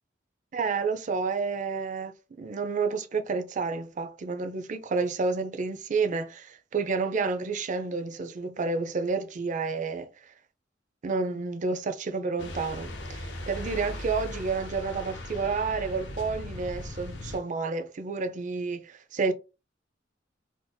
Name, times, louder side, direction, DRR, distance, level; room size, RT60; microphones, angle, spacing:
voice 1, 0.5-2.1 2.4-10.1 11.0-19.3, right 4 dB, 45° right, 0.4 m, -30 dB
sound 1, 12.4-17.4, left 1 dB, 70° left, 0.8 m, -38 dB
3.7 x 2.6 x 2.2 m
head